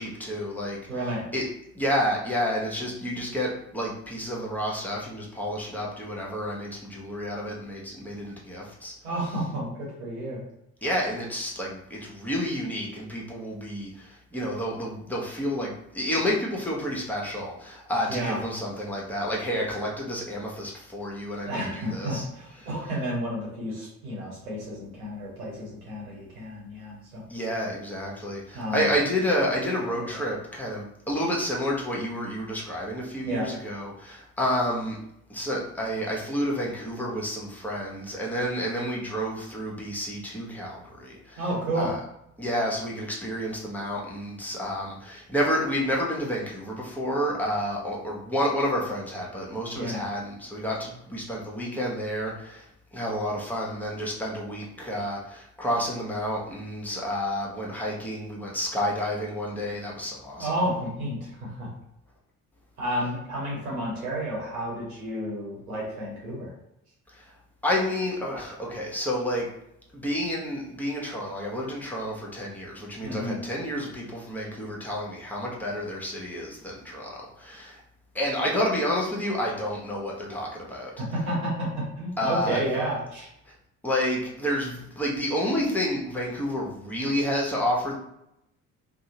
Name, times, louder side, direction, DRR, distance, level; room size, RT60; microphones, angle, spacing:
voice 1, 0.0-0.8 1.3-1.4 1.7-8.9 10.8-22.2 27.3-35.0 35.3-41.4 41.8-42.0 42.4-60.5 67.1-67.2 67.6-69.5 69.9-77.8 78.1-80.9 82.2-82.6 83.8-88.0, equal, 5° left, -3 dB, 0.8 m, -30 dB
voice 2, 0.9-1.2 9.0-10.4 18.1-18.4 21.4-27.2 28.5-28.9 29.9-30.2 33.2-33.5 41.4-41.9 49.7-50.0 60.4-61.7 62.8-66.5 73.0-73.4 81.1-83.3, right 1 dB, 85° right, -5 dB, 1.0 m, -31 dB
2.6 x 2.0 x 2.8 m, 0.80 s
hypercardioid pair, 50°, 42 cm